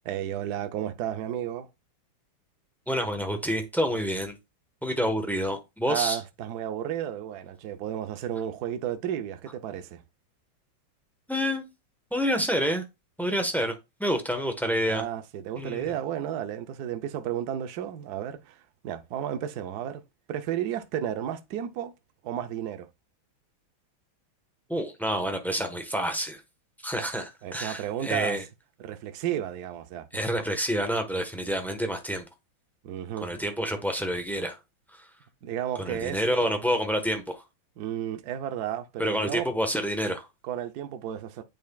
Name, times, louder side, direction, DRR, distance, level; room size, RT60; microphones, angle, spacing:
voice 1, 0.0-1.7 5.9-10.0 14.9-20.0 20.3-21.9 22.2-22.9 26.9-27.1 27.4-28.4 28.8-30.3 32.8-33.3 35.4-36.2 37.8-39.5 40.4-41.4, right 10 dB, 65° right, 1.1 m, -33 dB
voice 2, 2.9-4.4 4.8-6.2 11.3-11.7 12.1-12.9 13.2-13.7 14.0-15.0 15.6-15.9 24.7-26.4 26.8-28.4 30.1-32.3 33.2-34.6 34.9-35.1 35.8-37.4 39.0-40.3, equal, ahead, 0.7 m, -28 dB
9.2 x 5.3 x 2.3 m
omnidirectional pair, 2.2 m